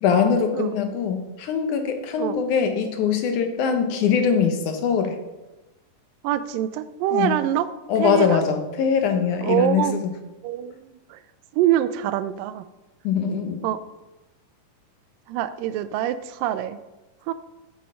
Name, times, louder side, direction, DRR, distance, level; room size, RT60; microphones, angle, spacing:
voice 1, 0.0-5.2 7.1-7.4 7.9-10.1 13.0-13.6, left 6 dB, 75° left, 6 dB, 2.2 m, -22 dB
voice 2, 6.2-7.7 8.0-8.4 9.4-9.9 10.4-11.2 11.5-12.7 13.6-13.8 15.3-16.8 17.3-17.4, right 11 dB, 85° right, 13 dB, 2.3 m, -24 dB
8.5 x 7.5 x 5.6 m, 1.1 s
omnidirectional pair, 3.9 m